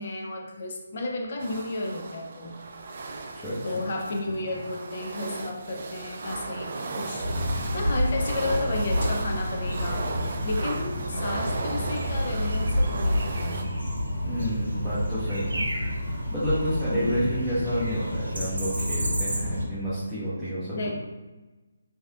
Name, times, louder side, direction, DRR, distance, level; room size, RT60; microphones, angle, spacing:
voice 1, 0.0-2.6 3.6-7.3 7.5-13.7 16.9-17.2 20.7-20.9, left 2 dB, 45° left, 1 dB, 0.4 m, -32 dB
sound 1, 1.4-13.6, right 3 dB, 45° right, 0.3 m, -36 dB
voice 2, 3.3-3.8 14.2-15.6 16.1-20.9, equal, 5° left, -15 dB, 0.8 m, -30 dB
sound 2, 7.2-19.6, equal, 75° right, 0.7 m, -29 dB
3.2 x 2.7 x 2.3 m, 1.2 s
figure-of-eight pair, 150°, 0 cm